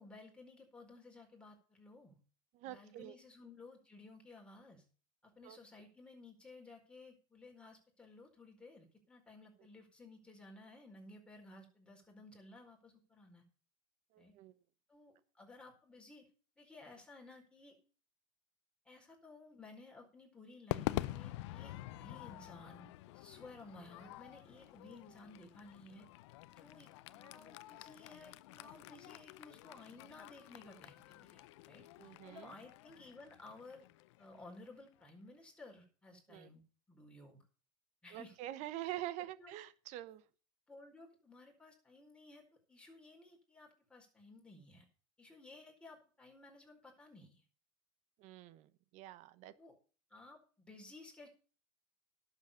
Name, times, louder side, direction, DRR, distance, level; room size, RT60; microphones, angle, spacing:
voice 1, 0.0-2.2 2.6-4.8 5.2-13.4 14.2-14.3 14.9-16.3 16.6-17.8 18.8-26.1 26.6-33.9 34.2-36.6 36.9-37.4 38.0-39.0 39.4-39.5 40.7-42.4 42.7-44.9 45.2-47.4 49.6-49.7 50.1-51.3, left 2 dB, 5° left, 0 dB, 4.6 m, -56 dB
voice 2, 2.5-3.1 5.4-5.6 14.1-14.5 32.0-32.5 36.3-36.5 38.1-40.2 48.2-49.5, right 15 dB, 55° right, 15 dB, 1.1 m, -46 dB
Crowd / Fireworks, 20.7-35.1, left 17 dB, 80° left, 0.6 m, -46 dB
11.5 x 7.4 x 6.9 m, 0.38 s
supercardioid pair, 125°, 15 cm